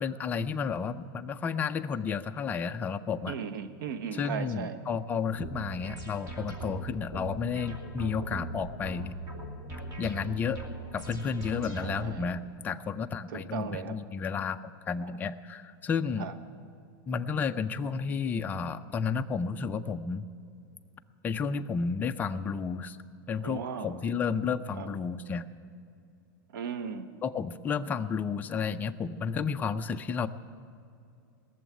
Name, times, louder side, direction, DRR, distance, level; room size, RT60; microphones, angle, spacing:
voice 1, 0.0-3.4 4.1-9.2 10.0-10.6 10.9-16.3 17.1-20.3 21.2-23.0 23.3-25.5 27.2-30.3, left 5 dB, 15° left, 8 dB, 0.4 m, -32 dB
voice 2, 3.3-4.8 9.7-9.8 11.8-12.3 13.3-14.0 16.2-16.3 23.4-24.0 24.8-24.9 26.5-27.1, right 7 dB, 70° right, 10 dB, 1.1 m, -37 dB
sound 1, 5.4-12.3, right 2 dB, 30° right, 2.5 m, -40 dB
18.5 x 7.1 x 9.7 m, 2.5 s
supercardioid pair, 150°, 12 cm